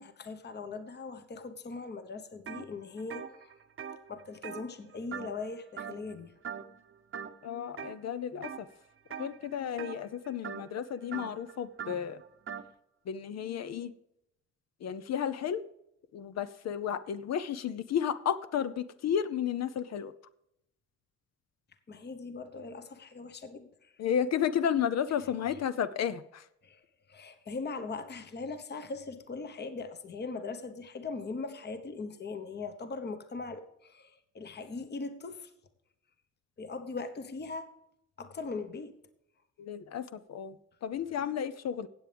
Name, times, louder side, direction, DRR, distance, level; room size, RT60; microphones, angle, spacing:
voice 1, 0.0-3.5 4.1-6.3 21.9-23.9 26.6-35.5 36.6-37.7 38.2-38.9, left 4 dB, 35° left, 1.1 m, -40 dB
sound 1, 2.5-2.7 3.0-5.5 5.8-6.1 6.4-6.8 7.1-7.9 8.4-8.7 9.1-12.7, right 7 dB, 45° right, 0.8 m, -42 dB
voice 2, 7.4-8.7 9.2-12.2 13.1-13.9 14.8-15.6 16.1-20.1 24.0-26.5 39.6-41.9, left 8 dB, 60° left, 0.7 m, -32 dB
17.0 x 7.8 x 3.4 m
cardioid pair, 90°, 30 cm